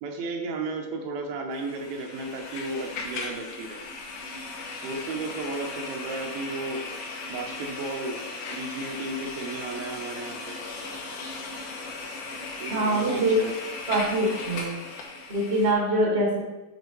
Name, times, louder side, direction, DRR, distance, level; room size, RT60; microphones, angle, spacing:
voice 1, 0.0-3.8 4.8-6.8 7.3-8.2 8.5-10.6 12.6-13.5, right 3 dB, 75° right, 3 dB, 2.4 m, -34 dB
sound 1, 1.5-15.7, left 3 dB, 75° left, 1.9 m, -37 dB
voice 2, 12.7-13.4 13.9-14.7 15.3-16.4, right 1 dB, 50° right, -3 dB, 0.7 m, -24 dB
8.0 x 4.8 x 3.1 m, 1.1 s
omnidirectional pair, 4.3 m